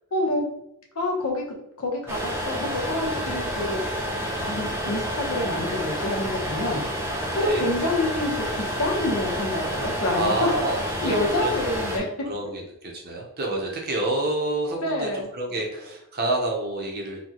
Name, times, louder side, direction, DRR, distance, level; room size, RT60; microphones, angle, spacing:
voice 1, 0.1-0.4 1.0-1.4 1.8-3.8 4.5-6.8 7.3-10.5 11.0-12.1 14.8-15.3, left 2 dB, 80° left, -1 dB, 0.9 m, -27 dB
sound 1, 2.1-12.0, equal, 10° right, 0.6 m, -29 dB
voice 2, 7.3-7.7 10.1-11.5 11.9-17.2, right 2 dB, 45° right, 0 dB, 0.7 m, -28 dB
3.9 x 2.2 x 2.9 m, 0.80 s
head